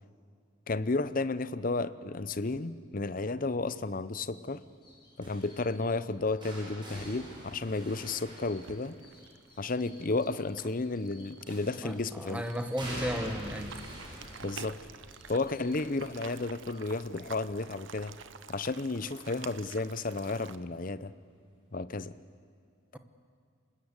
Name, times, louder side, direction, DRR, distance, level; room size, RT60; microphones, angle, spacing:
voice 1, 0.7-4.6 5.2-9.0 9.6-12.4 14.4-14.8 15.3-18.1 18.5-21.1 21.7-22.1, left 3 dB, 45° left, 15 dB, 0.7 m, -32 dB
sound 1, 4.4-16.8, left 1 dB, 20° left, 6.1 m, -60 dB
sound 2, 5.2-9.3 11.5-12.1 12.8-18.6 18.9-19.3 20.6-20.7, right 1 dB, 25° right, 7.2 m, -46 dB
sound 3, 8.6-20.6, right 6 dB, 70° right, 0.9 m, -49 dB
voice 2, 11.8-13.7, equal, 5° right, 7 dB, 1.3 m, -34 dB
26.0 x 20.5 x 8.2 m, 2.3 s
head